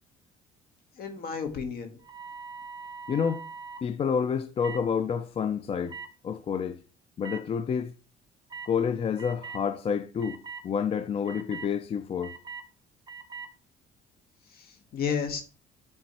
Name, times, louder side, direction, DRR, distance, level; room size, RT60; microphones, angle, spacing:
voice 1, 1.0-2.0 14.5-15.4, left 6 dB, 65° left, 1.5 m, -32 dB
sound 1, 2.0-3.8 4.6-4.8 5.9-6.1 7.2-7.4 8.5-8.7 9.2-9.6 10.2-10.6 11.3-11.7 12.2-12.6 13.1-13.5, right 5 dB, 25° right, 0.9 m, -41 dB
voice 2, 3.1-3.4 3.8-6.0 6.2-6.8 7.2-7.9 8.6-10.4 10.6-12.4, left 7 dB, 35° left, 0.4 m, -29 dB
8.7 x 3.4 x 4.3 m
cardioid pair, 110°, 17 cm